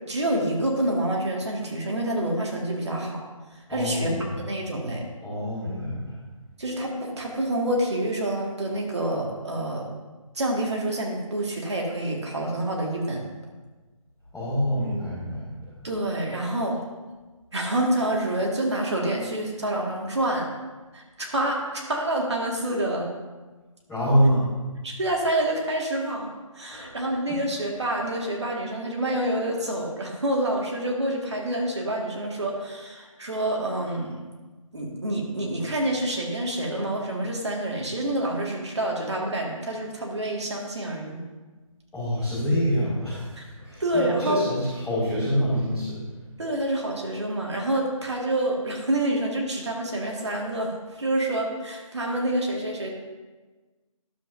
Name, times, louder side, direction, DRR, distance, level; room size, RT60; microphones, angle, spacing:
voice 1, 0.1-3.2 3.7-5.0 6.6-9.9 10.4-13.2 15.8-16.8 17.5-20.4 20.9-23.1 24.8-26.3 26.6-34.1 34.7-41.2 43.4-43.5 43.8-44.4 46.4-50.7 51.0-52.9, right 1 dB, 50° right, -1 dB, 1.9 m, -27 dB
voice 2, 3.7-4.4 5.2-6.1 14.3-15.5 23.9-24.4 26.7-26.9 41.9-46.0, equal, ahead, -19 dB, 1.0 m, -26 dB
12.0 x 7.6 x 2.6 m, 1.3 s
figure-of-eight pair, 175°, 18 cm